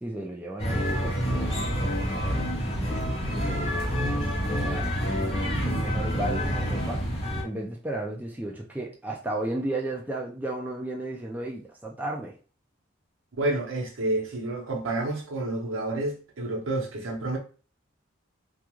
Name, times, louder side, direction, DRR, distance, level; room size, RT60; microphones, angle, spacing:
voice 1, 0.0-7.0 7.4-12.3, right 1 dB, 10° right, 0.3 m, -35 dB
sound 1, 0.6-7.4, equal, 30° left, 0.6 m, -27 dB
voice 2, 13.4-17.4, right 2 dB, 75° right, 0.8 m, -29 dB
2.3 x 2.2 x 3.0 m
head